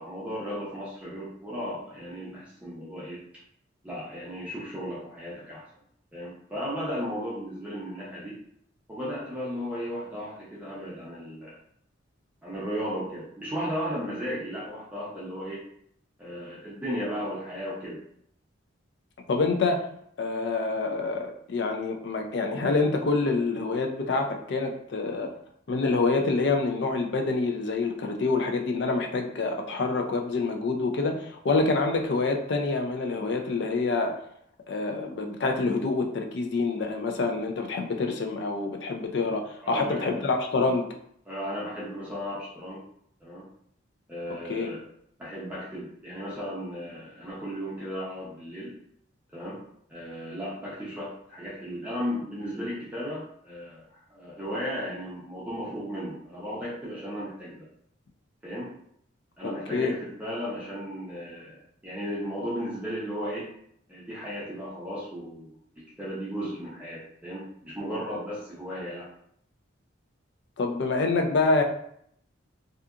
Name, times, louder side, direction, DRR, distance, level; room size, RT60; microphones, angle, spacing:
voice 1, 0.0-3.2 3.8-5.6 6.1-8.4 8.9-11.5 12.4-15.6 16.2-18.0 39.6-40.2 41.3-42.8 43.2-43.5 44.1-44.8 45.2-48.8 49.3-57.7 58.4-58.8 59.4-63.5 63.9-69.1, equal, 5° right, -8 dB, 0.5 m, -35 dB
voice 2, 19.3-19.8 20.2-25.3 25.7-34.1 34.7-40.9 44.5-44.7 59.4-59.9 70.6-71.6, left 3 dB, 55° left, 4 dB, 0.4 m, -26 dB
2.7 x 2.4 x 2.3 m, 0.68 s
head